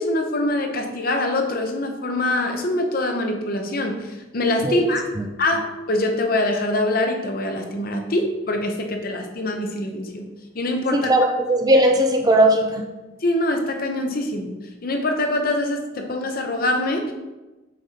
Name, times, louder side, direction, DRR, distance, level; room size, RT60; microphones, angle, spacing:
voice 1, 0.0-5.0 5.4-10.2 10.5-11.1 13.2-14.5 14.8-17.1, left 1 dB, 45° left, 4 dB, 0.7 m, -24 dB
voice 2, 10.9-12.9, right 1 dB, 20° right, 4 dB, 0.4 m, -18 dB
7.4 x 4.7 x 2.8 m, 1.1 s
head